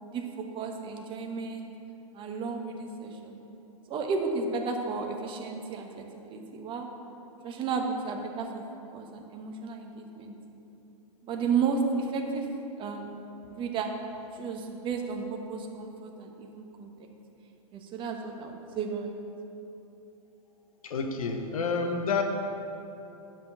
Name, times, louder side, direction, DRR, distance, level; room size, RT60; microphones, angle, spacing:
voice 1, 0.0-1.7 2.1-3.4 3.9-6.9 7.4-8.6 8.9-10.3 11.2-12.5 12.8-13.1 13.5-13.9 14.3-16.9 17.7-19.2, right 5 dB, 25° right, 3 dB, 1.1 m, -33 dB
voice 2, 20.8-22.2, left 4 dB, 75° left, 4 dB, 1.2 m, -29 dB
10.0 x 6.1 x 6.5 m, 2.9 s
hypercardioid pair, 120°, 18 cm